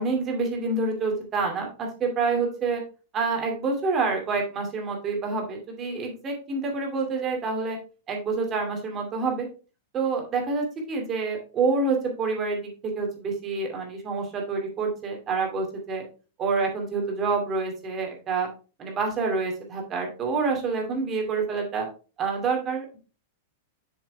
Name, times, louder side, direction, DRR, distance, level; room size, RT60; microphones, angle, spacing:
voice 1, 0.0-2.8 3.1-7.8 8.1-9.5 9.9-16.0 16.4-18.5 18.8-21.9 22.2-23.0, right 4 dB, 25° right, 1 dB, 2.5 m, -27 dB
7.4 x 6.6 x 3.4 m, 0.35 s
supercardioid pair, 150°, 0 cm